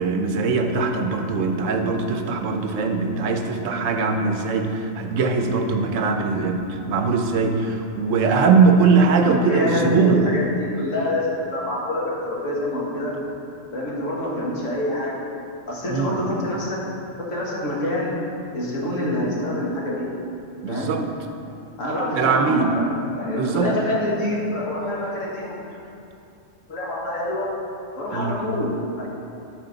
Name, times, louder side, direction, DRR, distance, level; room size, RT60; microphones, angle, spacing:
voice 1, 0.0-10.2 15.9-16.2 20.6-21.0 22.2-22.7 23.3-23.7 28.1-28.4, right 4 dB, 75° right, 5 dB, 1.0 m, -21 dB
voice 2, 9.1-13.1 13.7-15.1 15.7-16.8 17.3-18.1 18.5-20.1 20.7-20.9 21.8-22.9 23.2-25.4 26.7-27.5 28.0-29.1, left 1 dB, 75° left, -5 dB, 1.9 m, -26 dB
12.0 x 4.4 x 3.9 m, 2.7 s
omnidirectional pair, 1.3 m